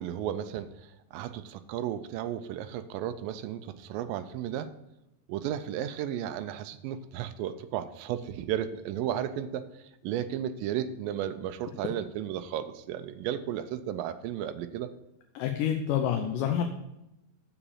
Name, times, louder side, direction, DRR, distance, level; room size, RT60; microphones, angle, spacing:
voice 1, 0.0-4.7 5.3-14.9, right 10 dB, 80° right, 10 dB, 2.3 m, -34 dB
voice 2, 15.4-16.6, left 9 dB, 75° left, 4 dB, 2.2 m, -28 dB
7.1 x 7.0 x 7.1 m, 0.87 s
omnidirectional pair, 4.1 m